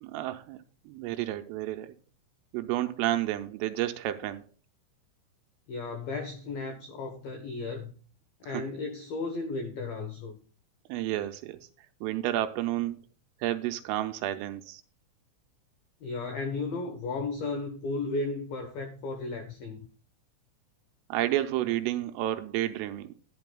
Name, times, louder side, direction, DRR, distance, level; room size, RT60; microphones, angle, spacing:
voice 1, 0.0-1.9 2.5-4.4 8.4-8.6 10.9-11.7 12.0-13.0 13.4-14.8 21.1-23.1, right 14 dB, 85° right, 3.1 m, -31 dB
voice 2, 5.7-7.9 8.4-10.4 16.0-19.8, left 3 dB, 85° left, 2.0 m, -34 dB
11.0 x 11.0 x 2.3 m
omnidirectional pair, 6.0 m